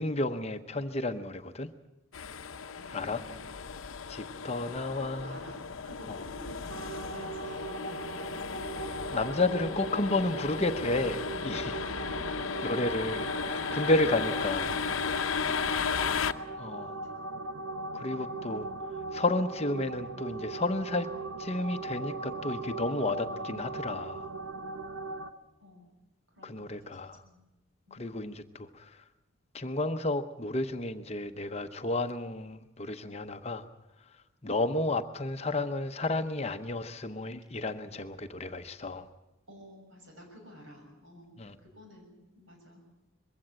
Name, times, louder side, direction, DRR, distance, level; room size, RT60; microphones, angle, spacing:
voice 1, 0.0-1.7 2.9-3.2 4.1-5.3 6.1-6.2 9.1-11.8 12.6-14.8 16.6-17.0 17.9-18.7 19.1-21.1 21.4-24.3 26.4-27.2 27.9-29.0 29.5-33.7 34.4-39.1 41.4-41.6, left 2 dB, 30° left, 8 dB, 0.8 m, -32 dB
sound 1, 2.1-16.3, left 6 dB, 70° left, 0.8 m, -35 dB
voice 2, 2.7-3.4 4.9-8.6 16.6-17.1 25.6-25.9 26.3-27.4 27.9-28.0 39.5-42.8, equal, 65° right, 2 dB, 6.8 m, -52 dB
sound 2, 6.7-25.3, right 3 dB, 80° right, 1.1 m, -39 dB
21.5 x 15.5 x 8.8 m, 1.0 s
head